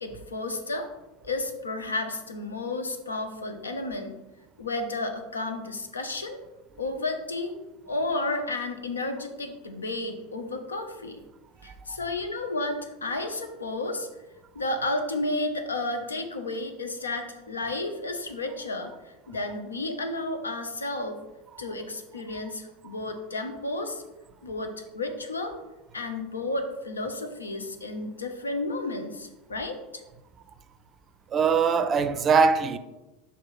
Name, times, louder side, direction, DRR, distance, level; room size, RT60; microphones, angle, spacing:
voice 1, 0.0-0.9 1.2-4.2 4.6-6.4 6.8-7.6 7.9-11.2 11.6-14.1 14.5-21.2 21.6-24.0 24.4-25.5 25.9-29.8, left 2 dB, 80° left, 0.8 m, -32 dB
voice 2, 31.3-32.8, right 5 dB, 30° right, 0.5 m, -22 dB
5.8 x 4.8 x 4.1 m
figure-of-eight pair, 80°, 0 cm